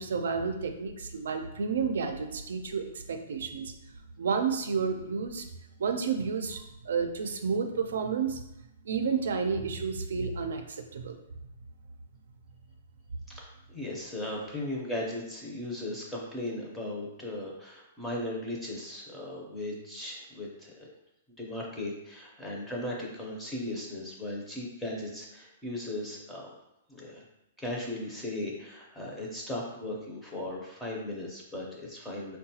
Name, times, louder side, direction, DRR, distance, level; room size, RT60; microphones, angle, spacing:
voice 1, 0.0-3.7 4.2-5.5 5.8-8.4 8.8-11.2, right 5 dB, 80° right, 6 dB, 0.4 m, -31 dB
voice 2, 13.3-20.9 21.4-26.5 26.9-27.2 27.6-32.4, left 1 dB, 5° left, -4 dB, 0.5 m, -37 dB
4.7 x 2.2 x 2.8 m, 0.89 s
hypercardioid pair, 170°, 0 cm